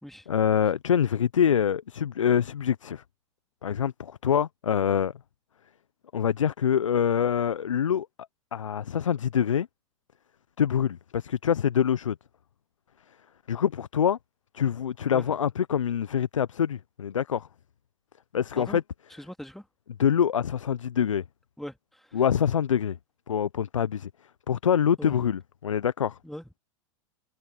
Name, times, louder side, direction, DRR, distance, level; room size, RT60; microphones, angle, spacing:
voice 1, 0.3-3.0 3.6-5.1 6.1-8.1 8.5-9.7 10.6-12.2 13.5-14.2 14.5-17.5 18.3-18.8 20.0-21.2 22.1-23.0 23.3-24.1 24.5-26.2, left 8 dB, 85° left, 0.7 m, -25 dB
voice 2, 19.2-19.7 21.6-22.2 25.0-25.2 26.2-26.6, equal, ahead, 2.7 m, -41 dB
hypercardioid pair, 90°, 16 cm